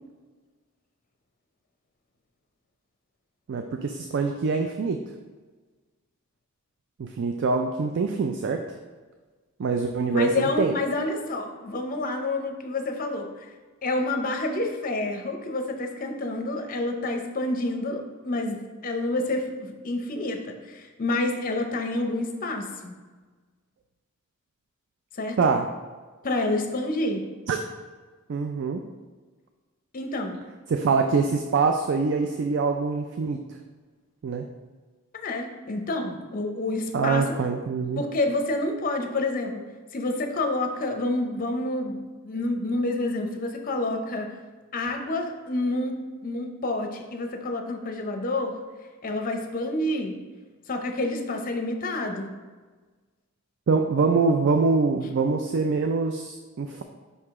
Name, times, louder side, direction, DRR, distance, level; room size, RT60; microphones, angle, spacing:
voice 1, 3.5-5.0 7.0-8.6 9.6-10.7 25.4-25.7 27.5-27.6 28.3-28.8 30.7-33.4 34.2-34.5 36.9-38.0 53.7-56.8, right 4 dB, 55° right, 5 dB, 0.4 m, -24 dB
voice 2, 10.1-13.5 13.8-22.9 25.2-25.4 26.2-27.2 29.9-30.4 35.1-37.2 38.0-39.6 39.9-44.3 44.7-45.9 46.2-48.5 49.0-50.2 50.7-52.3, left 2 dB, 40° left, 5 dB, 0.6 m, -28 dB
5.4 x 4.8 x 3.5 m, 1.4 s
head